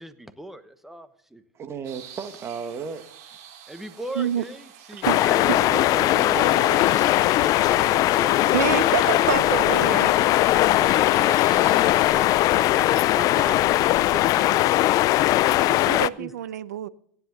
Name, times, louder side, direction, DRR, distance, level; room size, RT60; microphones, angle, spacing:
voice 1, 0.0-1.4 3.7-6.5 7.3-8.9 9.1-9.2 10.2-10.4 10.8-14.6 15.7-16.3, right 1 dB, 5° right, 1.1 m, -38 dB
voice 2, 1.5-3.1 5.7-7.1, right 6 dB, 30° right, 1.7 m, -34 dB
sound 1, 1.8-12.3, right 9 dB, 60° right, 4.3 m, -47 dB
sound 2, 5.0-16.1, left 15 dB, 40° left, 0.4 m, -20 dB
sound 3, 6.9-11.7, right 7 dB, 45° right, 3.0 m, -48 dB
voice 3, 8.5-10.1 15.7-16.9, right 10 dB, 85° right, 0.7 m, -27 dB
16.5 x 10.0 x 4.0 m
supercardioid pair, 115°, 9 cm